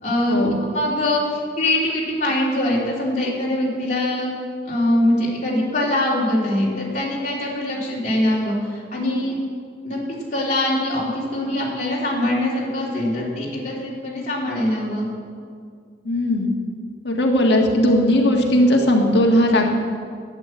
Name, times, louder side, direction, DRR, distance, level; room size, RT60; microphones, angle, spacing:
voice 1, 0.0-4.3 4.6-9.3 9.8-15.1, left 1 dB, 40° left, -5 dB, 3.3 m, -23 dB
voice 2, 16.1-16.5 17.0-19.7, left 1 dB, 75° left, 1 dB, 1.6 m, -17 dB
12.5 x 9.1 x 7.8 m, 2.1 s
head